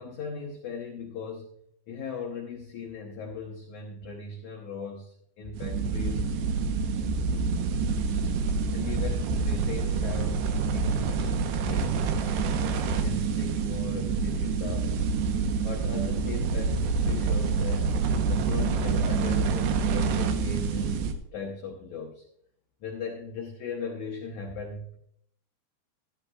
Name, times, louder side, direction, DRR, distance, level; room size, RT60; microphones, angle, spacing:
voice 1, 0.0-1.5 1.9-6.3 8.7-12.3 12.8-15.0 15.6-18.0 18.3-21.1 21.3-22.2 22.8-25.0, left 4 dB, 75° left, 1 dB, 1.7 m, -38 dB
sound 1, 5.5-21.1, right 5 dB, 85° right, 3.0 m, -27 dB
13.5 x 13.0 x 2.4 m, 0.71 s
omnidirectional pair, 5.0 m